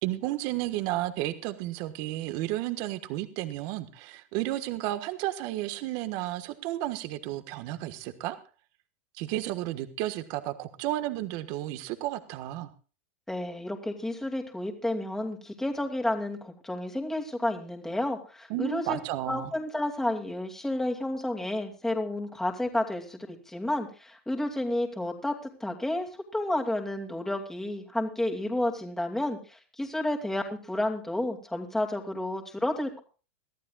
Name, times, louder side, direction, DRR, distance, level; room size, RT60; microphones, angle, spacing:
voice 1, 0.0-8.4 9.2-12.7 18.5-19.5, right 15 dB, 55° right, 10 dB, 1.4 m, -32 dB
voice 2, 13.3-19.0 19.3-33.0, left 1 dB, 5° left, 2 dB, 2.5 m, -31 dB
23.0 x 14.0 x 2.4 m, 0.36 s
hypercardioid pair, 120°, 7 cm